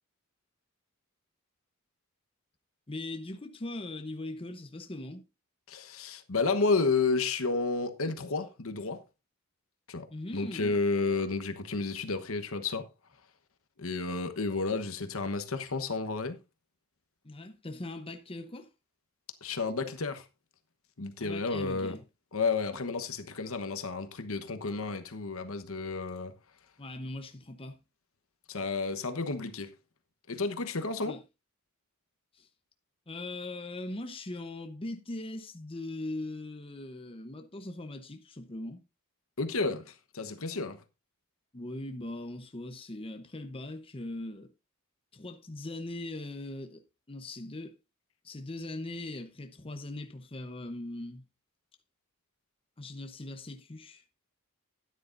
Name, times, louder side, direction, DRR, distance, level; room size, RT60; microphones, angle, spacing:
voice 1, 2.9-5.2 10.1-10.7 17.2-18.7 21.2-22.0 26.8-27.8 31.0-31.2 32.3-32.5 33.1-38.8 41.5-44.5 45.1-46.8 47.1-47.8 48.2-51.2 52.8-54.0, left 2 dB, 25° left, 0.8 m, -40 dB
voice 2, 5.7-9.0 9.9-10.1 10.3-12.9 13.8-16.4 19.4-20.2 21.0-22.0 22.3-26.3 28.5-29.7 30.3-31.2 39.4-40.8, left 3 dB, 65° left, 1.1 m, -31 dB
13.0 x 9.7 x 2.6 m
head